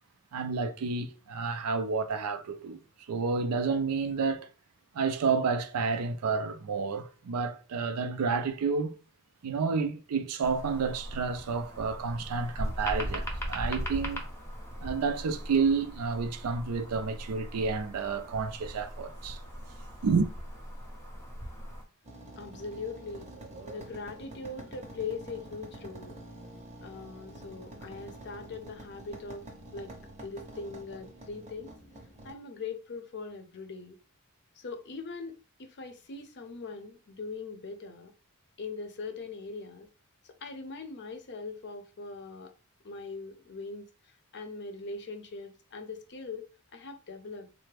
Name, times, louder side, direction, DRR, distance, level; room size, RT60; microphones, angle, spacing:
voice 1, 0.3-2.8 3.1-4.5 4.9-9.0 9.4-14.2 14.8-19.4 20.0-20.3, right 4 dB, 85° right, 0.4 m, -30 dB
sound 1, 10.4-21.8, equal, 10° left, 0.6 m, -39 dB
sound 2, 22.0-32.3, right 1 dB, 30° right, 0.7 m, -47 dB
voice 2, 22.4-23.3 23.7-26.2 26.8-29.5 29.7-29.9 30.2-31.8 32.2-34.0 34.5-38.1 38.6-39.9 40.2-42.5 42.8-46.5 46.7-47.5, left 4 dB, 50° left, 0.5 m, -41 dB
3.3 x 2.0 x 3.2 m
head